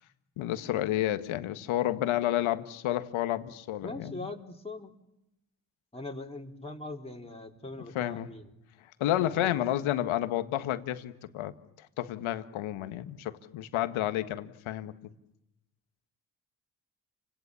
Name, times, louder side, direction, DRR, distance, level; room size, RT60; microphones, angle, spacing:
voice 1, 0.4-4.3 7.9-8.3 9.0-15.1, left 13 dB, 75° left, 10 dB, 1.7 m, -31 dB
voice 2, 3.8-4.9 5.9-8.5 9.2-9.6, left 2 dB, 10° left, 0 dB, 4.1 m, -41 dB
30.0 x 25.5 x 7.2 m, 0.87 s
hypercardioid pair, 40°, 50 cm